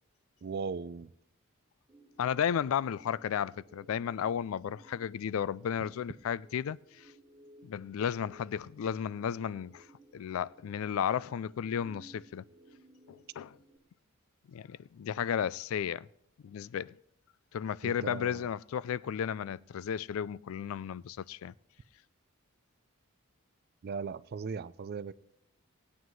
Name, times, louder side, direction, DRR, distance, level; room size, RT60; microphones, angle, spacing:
voice 1, 0.4-1.1 17.8-18.5 23.8-25.1, right 5 dB, 45° right, 0.4 m, -38 dB
sound 1, 1.9-13.8, right 1 dB, 20° right, 1.3 m, -59 dB
voice 2, 2.2-7.1 7.6-9.8 10.1-12.4 13.1-13.6 14.5-16.1 16.4-16.9 17.5-21.5, left 8 dB, 70° left, 0.3 m, -33 dB
19.5 x 9.3 x 3.1 m
head